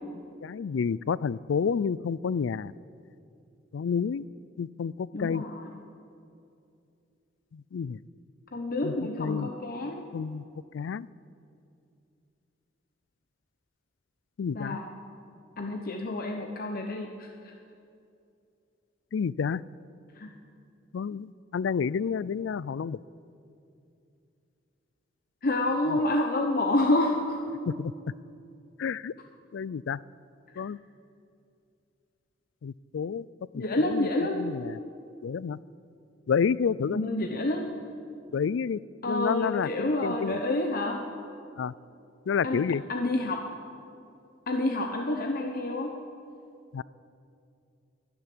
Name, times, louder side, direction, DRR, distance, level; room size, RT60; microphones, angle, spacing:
voice 1, 0.4-2.7 3.7-4.3 4.6-5.4 7.5-8.0 8.8-9.5 10.1-10.4 10.7-11.1 14.4-14.8 19.1-19.6 20.9-23.0 25.9-26.0 27.7-27.9 28.8-29.1 29.5-30.0 30.6-30.8 32.6-33.3 33.5-34.8 35.2-35.6 36.3-37.0 38.3-38.8 39.0-40.4 41.6-41.7 42.3-42.8 46.7-46.8, left 6 dB, 80° left, 21 dB, 0.4 m, -29 dB
voice 2, 5.1-5.6 8.5-10.0 14.5-14.8 15.6-17.3 20.2-20.3 25.4-27.4 33.5-34.4 36.9-37.7 39.0-41.0 42.4-42.6 42.9-43.5 44.5-45.9, left 1 dB, 50° left, 3 dB, 0.9 m, -28 dB
13.0 x 11.0 x 10.0 m, 2.6 s
head